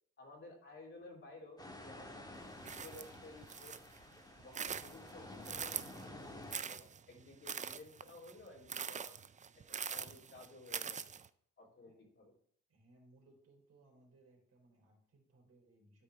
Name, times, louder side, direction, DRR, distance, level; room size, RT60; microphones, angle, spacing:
voice 1, 0.2-2.2 2.6-3.8 4.4-9.1 9.5-11.1 11.6-12.3, left 2 dB, 45° left, -2 dB, 3.1 m, -55 dB
sound 1, 1.6-6.6, left 1 dB, 15° left, 1.8 m, -51 dB
sound 2, 2.6-4.0 4.4-6.1 6.5-11.3, right 7 dB, 25° right, 0.4 m, -43 dB
voice 2, 12.7-16.0, right 2 dB, 55° right, -1 dB, 3.9 m, -66 dB
12.5 x 4.6 x 3.3 m, 0.64 s
cardioid pair, 90°, 30 cm